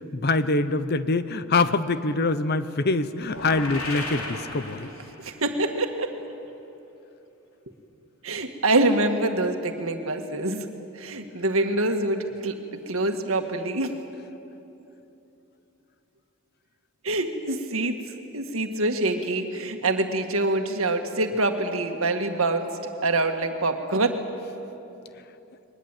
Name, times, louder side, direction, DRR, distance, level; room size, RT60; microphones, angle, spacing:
voice 1, 0.1-4.9, left 3 dB, 50° left, 13 dB, 0.8 m, -24 dB
sound 1, 3.2-5.4, left 2 dB, 85° left, 3.5 m, -35 dB
voice 2, 5.2-6.1 8.2-10.7 10.9-13.9 17.0-18.0 18.3-22.7 23.0-24.2, right 2 dB, 75° right, 5 dB, 1.9 m, -25 dB
22.5 x 20.0 x 9.2 m, 2.9 s
head